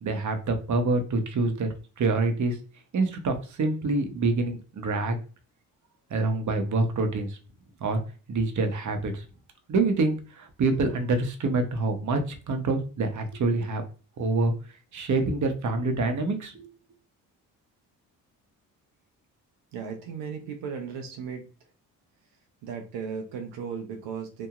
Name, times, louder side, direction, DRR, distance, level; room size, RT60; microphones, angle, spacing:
voice 1, 0.0-1.7 2.0-2.6 2.9-5.2 6.1-7.4 7.8-8.0 8.3-9.2 9.7-13.8 14.2-14.5 14.9-16.7, right 3 dB, 45° right, 6 dB, 0.9 m, -26 dB
voice 2, 19.7-21.4 22.6-24.5, right 6 dB, 75° right, 3 dB, 0.8 m, -36 dB
2.9 x 2.6 x 2.4 m, 0.36 s
supercardioid pair, 55°, 42 cm